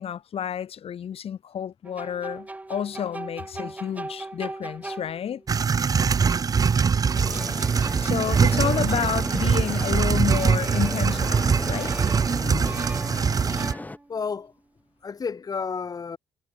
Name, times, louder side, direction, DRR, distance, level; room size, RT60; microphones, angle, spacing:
voice 1, 0.0-5.4 8.0-11.9, left 9 dB, 55° left, 6.1 m, -30 dB
sound 1, 1.8-5.5 7.1-9.8 10.3-11.4 11.6-14.3, right 2 dB, 10° right, 5.2 m, -40 dB
sound 2, 5.5-13.7, right 6 dB, 30° right, 0.8 m, -23 dB
sound 3, 7.1-14.0, left 2 dB, 15° left, 6.1 m, -36 dB
voice 2, 12.4-12.8 14.1-14.5 15.0-16.2, left 5 dB, 30° left, 2.7 m, -31 dB
cardioid pair, 150°, 12 cm